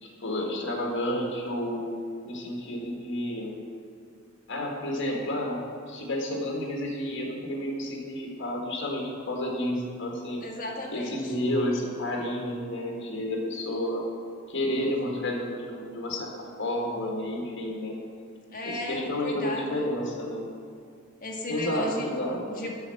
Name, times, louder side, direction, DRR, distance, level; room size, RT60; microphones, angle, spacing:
voice 1, 0.0-1.9 2.2-3.5 4.5-5.6 5.9-10.4 10.9-14.0 14.5-18.0 18.7-20.4 21.5-22.4, left 1 dB, 60° left, -1 dB, 1.7 m, -31 dB
voice 2, 10.4-11.3 14.7-15.2 18.5-19.9 21.2-22.1 22.4-22.7, left 1 dB, 45° left, -1 dB, 1.4 m, -35 dB
8.0 x 5.7 x 7.1 m, 2.3 s
head